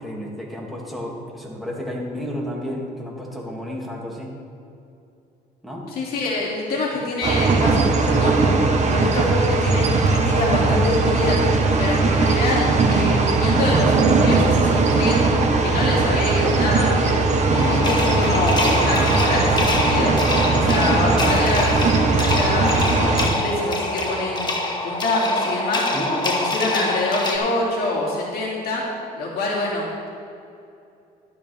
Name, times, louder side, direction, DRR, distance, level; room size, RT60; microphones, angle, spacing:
voice 1, 0.0-4.3 5.6-5.9 17.5-17.9 19.8-20.2 20.5-21.0 25.9-26.1, equal, ahead, -3 dB, 2.5 m, -31 dB
voice 2, 5.9-8.5 8.9-11.4 11.8-15.2 15.6-17.2 17.7-20.1 20.5-24.5 24.8-25.8 26.2-28.8 29.1-30.1, left 2 dB, 60° left, -5 dB, 2.8 m, -25 dB
sound 1, 7.2-23.3, right 3 dB, 45° right, 1.3 m, -19 dB
sound 2, 17.5-27.4, left 2 dB, 25° left, 1.5 m, -25 dB
12.5 x 12.0 x 3.5 m, 2.6 s
cardioid pair, 110°, 17 cm